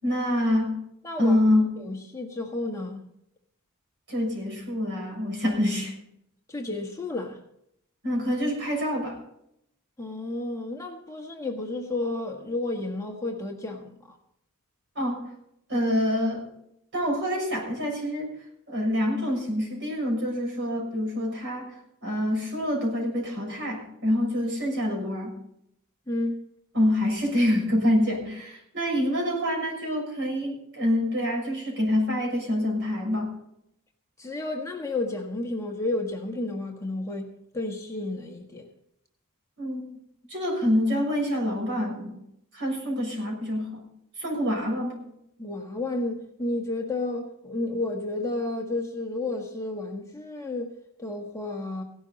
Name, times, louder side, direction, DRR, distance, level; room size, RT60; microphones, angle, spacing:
voice 1, 0.0-0.8 1.2-1.7 4.1-5.9 8.0-9.2 14.9-15.3 15.7-16.5 16.9-18.3 18.7-21.7 22.0-25.3 26.7-33.3 39.6-39.9 40.3-42.2 42.5-43.8 44.2-45.0, left 1 dB, 55° right, 0 dB, 6.5 m, -26 dB
voice 2, 1.0-1.4 1.8-3.0 6.5-7.4 10.0-14.2 26.1-26.5 34.2-37.3 37.5-38.6 45.4-50.7 51.0-51.8, left 2 dB, 15° left, 1 dB, 1.6 m, -31 dB
17.0 x 12.0 x 4.1 m, 0.74 s
head